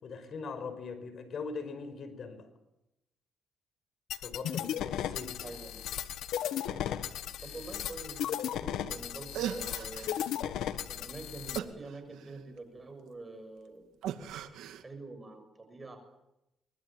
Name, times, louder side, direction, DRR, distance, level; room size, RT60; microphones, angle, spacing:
voice 1, 0.0-2.5 4.2-5.5, left 4 dB, 55° left, 11 dB, 5.3 m, -41 dB
sound 1, 4.1-11.6, left 10 dB, 80° left, 1.5 m, -36 dB
voice 2, 5.4-5.8 7.4-10.1 10.9-14.0 14.8-16.0, right 3 dB, 25° right, 7 dB, 6.6 m, -46 dB
sound 2, 9.0-9.1 9.3-10.3 11.5-12.6 14.0-14.8, right 10 dB, 85° right, 2.1 m, -38 dB
24.5 x 22.0 x 9.1 m, 0.91 s
cardioid pair, 90°, 0 cm